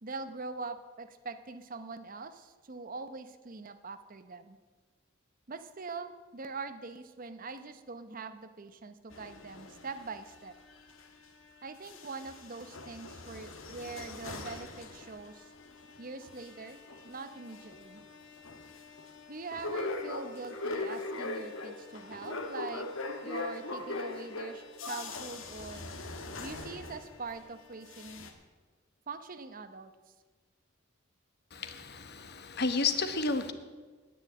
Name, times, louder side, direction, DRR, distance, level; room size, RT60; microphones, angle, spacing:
voice 1, 0.0-4.6 5.5-10.5 11.6-15.5 16.0-18.0 19.3-22.9 23.2-25.8 26.4-28.3 29.1-29.9, right 4 dB, 45° right, 11 dB, 0.8 m, -43 dB
sound 1, 9.1-11.5 11.8-27.5 27.8-28.3, left 2 dB, 80° left, 1.6 m, -41 dB
voice 2, 31.5-33.5, left 4 dB, 55° left, 9 dB, 1.1 m, -31 dB
10.0 x 9.6 x 8.7 m, 1.4 s
head